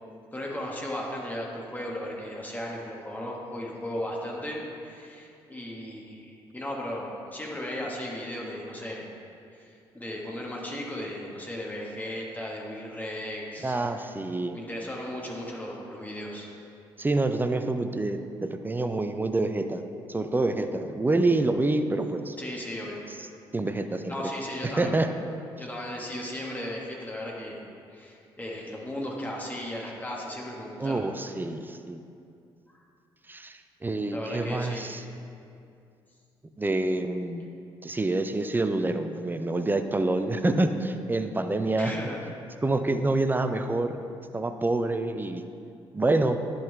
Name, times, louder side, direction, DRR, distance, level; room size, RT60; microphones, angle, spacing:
voice 1, 0.3-9.1 9.5-14.1 14.5-16.5 22.4-23.0 24.1-25.0 25.6-31.0 32.7-32.8 34.1-35.0 41.8-42.2, left 1 dB, 15° left, -3 dB, 1.6 m, -36 dB
voice 2, 13.6-14.6 17.0-19.8 20.1-22.4 23.5-24.2 24.6-25.1 30.8-32.0 33.3-35.0 36.6-37.4 37.8-41.9 42.6-44.0 44.3-45.4 45.9-46.4, right 2 dB, 15° right, 8 dB, 0.5 m, -27 dB
10.5 x 3.8 x 3.4 m, 2.5 s
hypercardioid pair, 45°, 13 cm